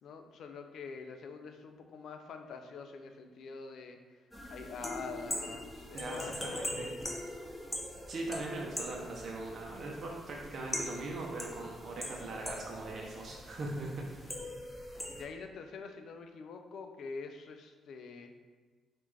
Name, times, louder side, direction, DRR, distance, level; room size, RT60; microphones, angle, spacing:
voice 1, 0.0-4.0 4.5-7.0 15.0-18.3, left 4 dB, 70° left, 6 dB, 0.4 m, -45 dB
sound 1, 4.3-15.2, left 1 dB, 10° left, 0.7 m, -42 dB
voice 2, 5.9-6.9 8.1-14.1, right 2 dB, 55° right, -1 dB, 0.6 m, -40 dB
5.5 x 2.5 x 3.2 m, 1.3 s
cardioid pair, 90°, 0 cm